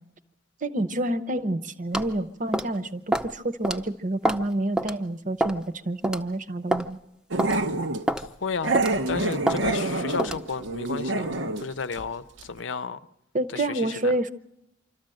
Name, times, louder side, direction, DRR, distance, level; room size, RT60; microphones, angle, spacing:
voice 1, 0.6-7.0 13.3-14.3, right 1 dB, 45° right, 0.9 m, -28 dB
sound 1, 1.9-2.1 2.5-2.8 3.1-3.3 3.6-3.8 4.2-4.5 4.8-4.9 5.4-5.6 6.0-6.2 6.7-6.9 7.4-7.5 8.1-8.3 8.7-9.0 9.5-9.6 10.2-10.4, right 1 dB, 5° right, 0.6 m, -26 dB
Growling, 7.3-8.0 8.6-11.7 11.9-12.1 12.4-12.5, right 2 dB, 90° right, 1.0 m, -27 dB
voice 2, 8.1-8.8 9.1-13.0 13.5-14.1, left 5 dB, 80° left, 0.6 m, -33 dB
25.5 x 13.5 x 7.7 m
head